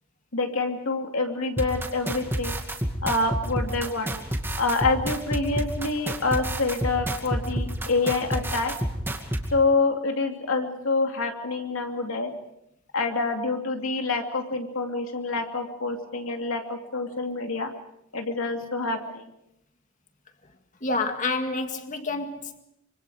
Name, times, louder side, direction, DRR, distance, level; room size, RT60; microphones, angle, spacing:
voice 1, 0.3-2.5 3.0-4.1 4.6-8.7 9.5-12.3 12.9-17.7 18.1-19.2, left 3 dB, 75° left, 3 dB, 2.8 m, -27 dB
sound 1, 1.6-9.4, right 1 dB, 10° right, 2.3 m, -28 dB
voice 2, 20.8-22.6, left 3 dB, 35° left, 6 dB, 2.1 m, -28 dB
25.5 x 25.0 x 5.1 m, 0.78 s
head